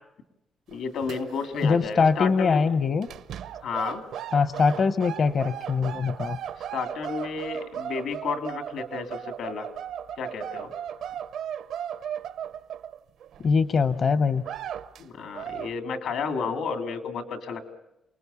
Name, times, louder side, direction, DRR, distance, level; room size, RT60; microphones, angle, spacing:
voice 1, 0.7-2.6 3.6-4.1 6.6-9.7 10.2-10.7 15.0-17.8, left 5 dB, 80° left, 7 dB, 2.6 m, -32 dB
sound 1, 0.7-1.7 1.9-2.1 3.0-13.5 13.9-14.0 14.4-15.0 15.3-15.7, right 9 dB, 80° right, 0.8 m, -36 dB
voice 2, 1.6-3.1 4.3-6.4 13.4-14.4, left 5 dB, 45° left, 12 dB, 0.8 m, -22 dB
28.5 x 20.0 x 7.0 m, 0.90 s
cardioid pair, 135°, 0 cm